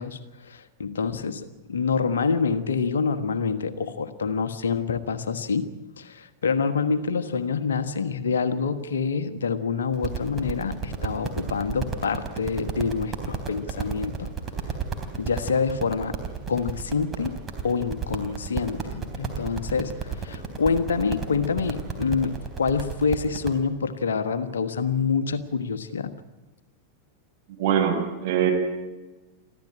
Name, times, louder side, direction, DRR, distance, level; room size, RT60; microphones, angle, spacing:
voice 1, 0.0-5.7 6.0-14.3 15.2-16.2 16.5-17.3 17.6-26.1, left 5 dB, 65° left, 12 dB, 1.3 m, -26 dB
sound 1, 9.9-23.6, right 6 dB, 20° right, 3.7 m, -33 dB
voice 2, 27.6-28.5, right 9 dB, 50° right, 2 dB, 6.4 m, -23 dB
24.0 x 15.0 x 8.8 m, 1.2 s
figure-of-eight pair, 90°, 0 cm